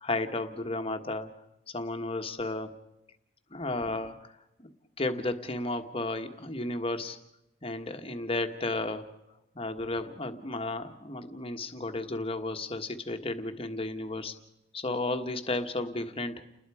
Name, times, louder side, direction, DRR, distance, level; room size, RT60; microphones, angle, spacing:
voice 1, 0.0-1.3 1.7-2.7 3.5-4.2 4.6-4.7 5.0-7.2 7.6-9.1 9.5-14.3 14.7-16.4, left 2 dB, 30° left, 7 dB, 1.4 m, -33 dB
30.0 x 20.5 x 4.9 m, 0.87 s
head